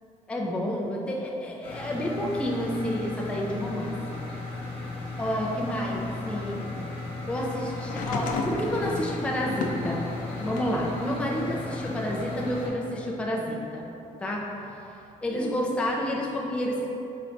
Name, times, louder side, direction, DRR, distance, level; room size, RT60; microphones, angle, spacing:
voice 1, 0.3-4.2 5.2-6.7 7.3-10.0 10.4-13.9 14.2-14.5 15.2-16.9, equal, 10° left, -2 dB, 0.3 m, -29 dB
sound 1, 1.6-12.7, left 3 dB, 40° left, 0.7 m, -36 dB
sound 2, 7.8-10.8 11.3-12.5 13.5-13.6, left 3 dB, 75° left, 0.4 m, -35 dB
4.9 x 2.5 x 3.3 m, 2.9 s
cardioid pair, 145°, 14 cm